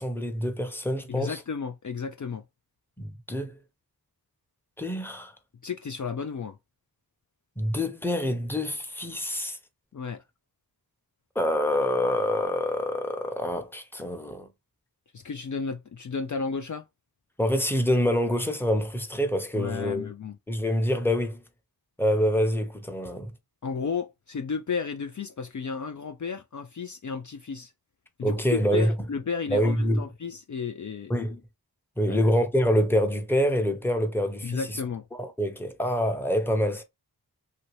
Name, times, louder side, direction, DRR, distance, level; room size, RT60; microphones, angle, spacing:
voice 1, 0.0-1.4 3.0-3.6 4.8-5.3 7.6-9.6 11.3-14.5 17.4-20.1 20.5-21.4 22.0-23.3 28.2-28.9 29.5-30.0 31.1-31.4 32.0-34.8 35.1-36.8, equal, 5° left, 0.8 m, -26 dB
voice 2, 1.1-2.4 5.6-6.6 9.9-10.2 15.1-16.8 19.6-20.4 23.6-27.7 28.2-31.1 32.1-32.2 34.4-35.1, left 5 dB, 50° left, 0.5 m, -33 dB
2.8 x 2.7 x 3.1 m
wide cardioid pair, 40°, 39 cm